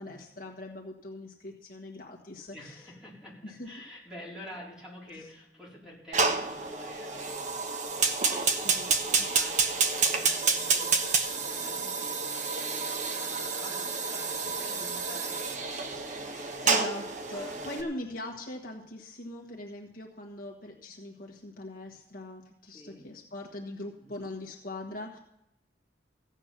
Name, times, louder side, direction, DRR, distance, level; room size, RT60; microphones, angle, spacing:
voice 1, 0.0-2.8 3.4-3.7 5.1-5.3 8.6-9.3 16.3-25.2, left 1 dB, 55° left, 1 dB, 1.6 m, -41 dB
voice 2, 2.5-16.7 17.3-17.8 22.7-23.1 24.0-24.3, left 1 dB, 5° right, -5 dB, 4.2 m, -49 dB
Fire, 6.1-17.8, right 4 dB, 45° right, 1.1 m, -29 dB
15.5 x 9.0 x 5.9 m, 0.81 s
head